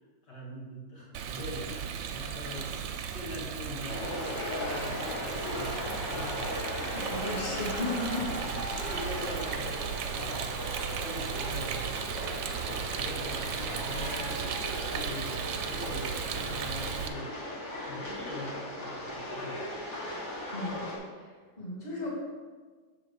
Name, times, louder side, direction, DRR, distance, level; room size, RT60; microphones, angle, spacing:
voice 1, 0.2-2.7 3.1-6.5 8.1-8.4 8.7-9.7 10.1-12.0 12.6-14.5 14.9-17.3 17.9-19.8, left 1 dB, 60° left, -3 dB, 2.1 m, -42 dB
Rain, 1.1-17.1, right 8 dB, 80° right, 1.3 m, -36 dB
sound 1, 3.9-21.0, left 1 dB, 40° left, 1.6 m, -37 dB
voice 2, 6.8-8.3 20.5-20.9 21.6-22.1, left 2 dB, 20° left, -6 dB, 1.8 m, -35 dB
6.6 x 3.8 x 6.1 m, 1.5 s
omnidirectional pair, 2.1 m